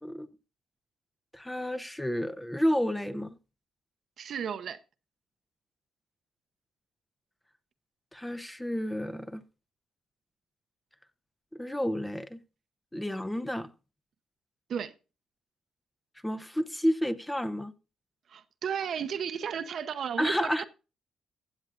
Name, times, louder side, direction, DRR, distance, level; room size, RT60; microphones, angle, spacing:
voice 1, 1.3-3.3 8.1-9.4 11.5-12.4 12.9-13.7 16.2-17.7 20.2-20.6, equal, 5° left, 0.7 m, -30 dB
voice 2, 4.2-4.8 14.7-14.9 18.3-20.7, right 7 dB, 60° right, 0.8 m, -34 dB
15.5 x 8.1 x 2.5 m
cardioid pair, 90°, 0 cm